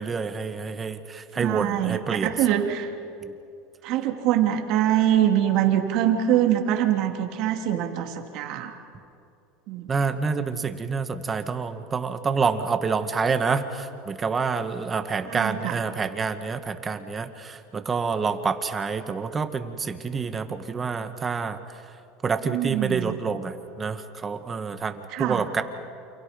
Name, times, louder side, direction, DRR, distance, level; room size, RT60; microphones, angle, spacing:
voice 1, 0.0-2.6 3.2-3.3 9.9-21.6 22.2-25.6, right 5 dB, 25° right, 9 dB, 2.0 m, -28 dB
voice 2, 1.4-2.9 3.8-8.7 9.7-9.9 15.2-15.8 22.4-23.2 25.1-25.4, right 11 dB, 60° right, 4 dB, 3.2 m, -24 dB
29.0 x 28.5 x 5.4 m, 2.5 s
hypercardioid pair, 95°, 0 cm